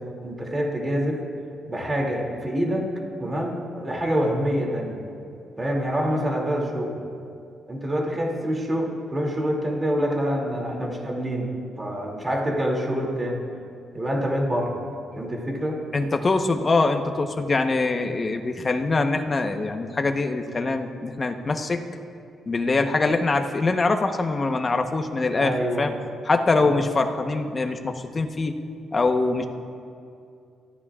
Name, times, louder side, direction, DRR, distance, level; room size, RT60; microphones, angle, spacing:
voice 1, 0.2-1.2 1.7-2.9 3.2-5.0 5.6-7.0 7.7-13.4 13.9-14.8 15.1-15.8 25.4-26.0 26.6-26.8, equal, 20° right, -1 dB, 2.6 m, -26 dB
voice 2, 15.9-21.8 22.5-25.9 26.2-28.5 28.9-29.5, left 3 dB, 30° left, 5 dB, 1.0 m, -23 dB
24.0 x 14.5 x 2.5 m, 2.4 s
cardioid pair, 110°, 0 cm